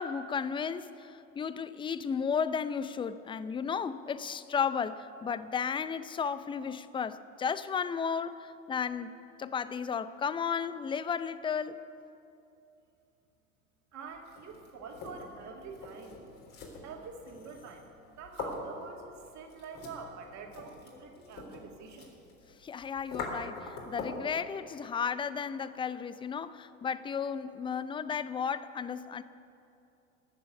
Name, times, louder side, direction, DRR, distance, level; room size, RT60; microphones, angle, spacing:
voice 1, 0.0-9.1 9.4-11.8 22.6-29.2, left 6 dB, 15° left, 0.4 m, -34 dB
voice 2, 13.9-16.2 16.8-17.8 18.2-22.1, right 5 dB, 45° right, 2.4 m, -46 dB
sound 1, 14.1-24.3, left 3 dB, 55° left, 3.8 m, -44 dB
18.5 x 7.1 x 8.2 m
hypercardioid pair, 75°, 40 cm